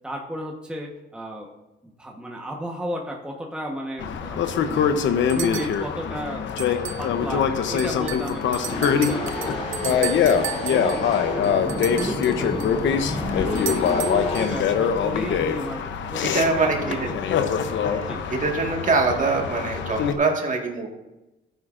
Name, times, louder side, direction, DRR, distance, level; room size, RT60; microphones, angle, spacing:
voice 1, 0.0-1.5 1.8-4.9 5.3-10.4 10.7-11.1 11.6-12.8 13.3-15.8 16.1-16.2 16.6-17.2 18.0-18.2, equal, 5° right, 0 dB, 1.2 m, -33 dB
sound 1, 4.0-20.1, left 7 dB, 70° left, 0.8 m, -24 dB
sound 2, 4.7-4.8 5.3-5.8 6.6-7.1 7.4-7.5 7.8-12.7 13.5-14.6, right 12 dB, 80° right, 0.8 m, -34 dB
sound 3, 8.6-14.4, left 2 dB, 35° left, 2.8 m, -31 dB
voice 2, 16.3-17.0 17.8-20.9, right 3 dB, 40° right, 1 dB, 1.8 m, -24 dB
12.5 x 9.3 x 2.6 m, 1.0 s
cardioid pair, 90°, 20 cm